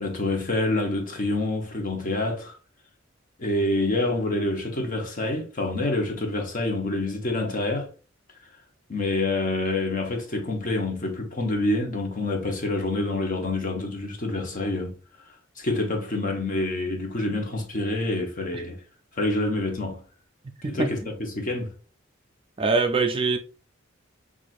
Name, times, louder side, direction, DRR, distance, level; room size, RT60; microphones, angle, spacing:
voice 1, 0.0-2.5 3.4-7.9 8.9-14.9 15.6-18.8 19.2-20.0 20.7-21.7, left 2 dB, 45° left, 0.9 m, -27 dB
voice 2, 22.6-23.4, right 4 dB, 25° right, 0.4 m, -23 dB
5.9 x 2.5 x 2.5 m
head